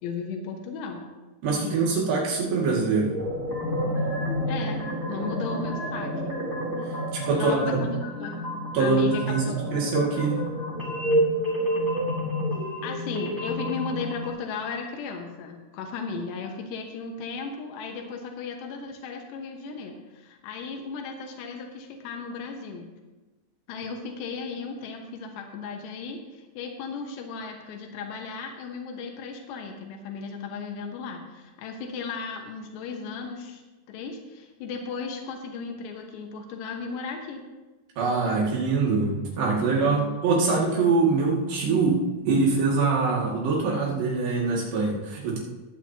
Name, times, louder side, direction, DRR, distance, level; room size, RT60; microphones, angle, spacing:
voice 1, 0.0-1.1 1.6-1.9 4.5-6.3 7.4-8.4 8.8-9.8 12.8-22.9 23.7-33.6 33.9-37.4 39.8-40.2, left 5 dB, 90° left, 2 dB, 3.4 m, -35 dB
voice 2, 1.4-3.2 7.1-7.8 8.7-10.4 38.0-45.4, right 4 dB, 80° right, -3 dB, 4.4 m, -24 dB
sound 1, 2.8-14.1, right 1 dB, 40° right, 2.1 m, -30 dB
sound 2, 3.4-14.3, left 1 dB, 15° right, 0.7 m, -35 dB
21.5 x 8.9 x 2.9 m, 1.2 s
omnidirectional pair, 4.8 m